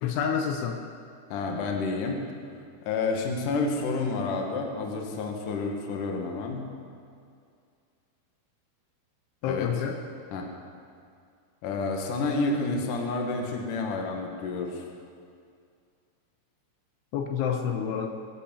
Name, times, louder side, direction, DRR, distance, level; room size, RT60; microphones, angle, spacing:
voice 1, 0.0-0.8 9.4-10.0 17.1-18.1, left 7 dB, 80° left, 4 dB, 3.2 m, -28 dB
voice 2, 1.3-2.2 2.8-6.7 9.4-9.7 10.3-10.5 11.6-14.8, left 3 dB, 55° left, 2 dB, 2.5 m, -29 dB
24.0 x 8.4 x 7.1 m, 2.3 s
omnidirectional pair, 5.6 m